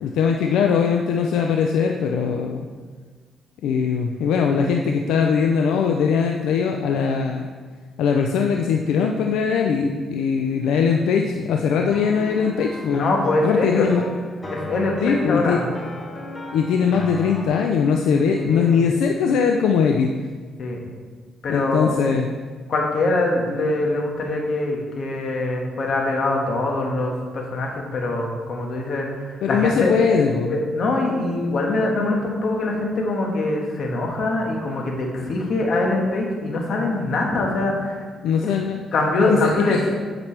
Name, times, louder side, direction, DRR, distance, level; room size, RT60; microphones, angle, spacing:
voice 1, 0.0-2.7 3.6-7.5 8.0-13.1 13.4-14.0 15.0-15.6 16.5-20.1 21.5-22.3 29.4-30.5 38.2-38.8 39.3-39.9, left 6 dB, 85° left, 2 dB, 0.4 m, -20 dB
sound 1, 11.8-17.5, left 2 dB, 25° left, 1.1 m, -34 dB
voice 2, 12.9-13.9 14.5-15.7 18.3-18.8 20.6-20.8 21.4-21.9 22.7-29.9 30.5-38.0 38.4-38.5 38.9-39.9, left 2 dB, 60° left, 0 dB, 1.6 m, -23 dB
8.6 x 5.9 x 3.3 m, 1.5 s
cardioid pair, 90°, 0 cm